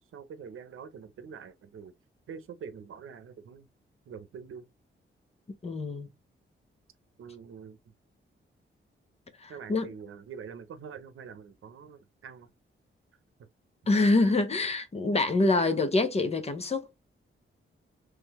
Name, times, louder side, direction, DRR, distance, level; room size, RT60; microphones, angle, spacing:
voice 1, 0.1-1.9 2.3-3.7 4.1-4.7 7.2-7.8 9.5-12.5 13.9-14.3 15.6-15.7, right 6 dB, 80° right, 0.7 m, -45 dB
voice 2, 5.6-6.1 9.4-9.9 13.9-16.9, left 2 dB, 30° left, 0.7 m, -26 dB
3.7 x 3.2 x 2.9 m
wide cardioid pair, 160°, 21 cm